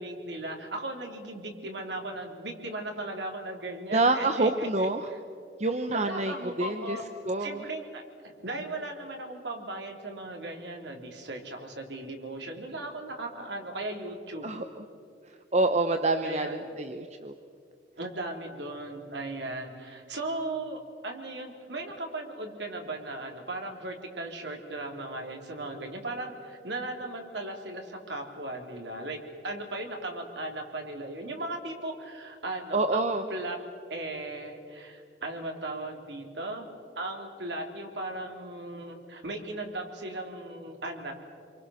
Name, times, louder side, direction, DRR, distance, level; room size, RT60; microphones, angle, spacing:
voice 1, 0.0-5.2 5.9-7.0 7.4-14.5 16.2-16.8 18.0-33.6 33.9-36.7 36.9-41.1, right 2 dB, 85° right, 2 dB, 3.3 m, -37 dB
voice 2, 3.9-5.1 5.6-7.0 7.2-7.6 14.4-14.8 15.5-17.3 32.7-33.2, right 2 dB, 40° right, 7 dB, 0.9 m, -27 dB
27.0 x 23.5 x 6.4 m, 2.3 s
head